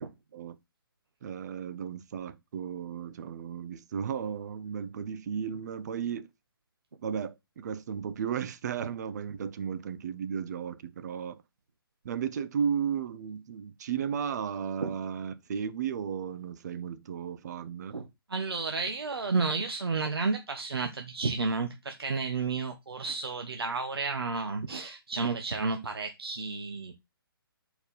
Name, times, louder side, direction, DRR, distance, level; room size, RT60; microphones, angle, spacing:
voice 1, 1.2-6.3 7.0-11.4 12.0-18.0, right 7 dB, 45° right, 0.7 m, -34 dB
voice 2, 17.9-26.9, right 4 dB, 85° right, 0.9 m, -32 dB
4.5 x 4.5 x 5.1 m
hypercardioid pair, 145°, 12 cm